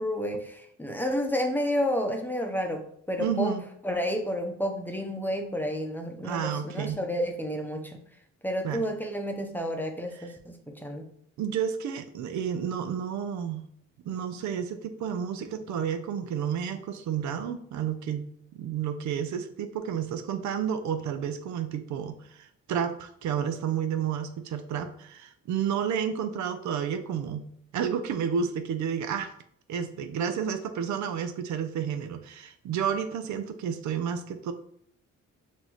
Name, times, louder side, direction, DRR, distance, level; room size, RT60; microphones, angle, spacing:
voice 1, 0.0-2.8 3.1-3.5 3.8-8.0 8.4-11.0, equal, 5° left, 3 dB, 0.8 m, -30 dB
voice 2, 3.2-3.7 6.2-7.0 8.6-8.8 11.4-13.7 14.1-27.5 27.7-29.3 29.7-34.5, right 8 dB, 70° right, 8 dB, 0.6 m, -31 dB
5.9 x 2.7 x 3.0 m, 0.67 s
cardioid pair, 90°, 30 cm